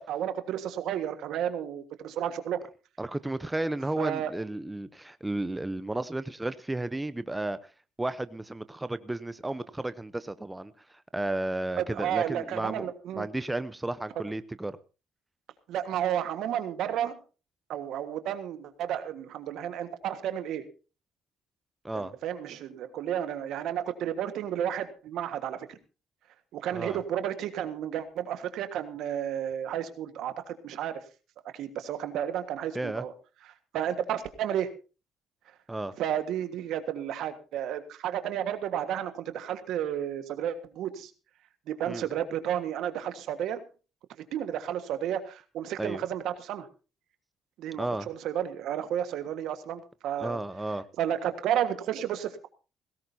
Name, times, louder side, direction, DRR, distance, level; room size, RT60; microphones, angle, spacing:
voice 1, 0.1-2.7 4.0-4.3 11.8-13.3 15.7-17.2 17.7-20.6 21.9-25.8 26.5-31.0 31.5-33.1 33.4-34.7 36.0-41.1 41.7-43.6 44.3-46.7 47.6-50.4 51.0-52.5, right 10 dB, 75° right, 10 dB, 1.5 m, -32 dB
voice 2, 3.0-7.6 8.0-10.7 11.1-14.8 21.8-22.1 26.7-27.0 32.7-33.0 35.7-35.9 41.9-42.1 45.8-46.0 47.8-48.1 50.2-50.8, right 2 dB, 15° right, 14 dB, 0.7 m, -33 dB
17.5 x 16.5 x 2.8 m, 0.34 s
supercardioid pair, 75°, 0 cm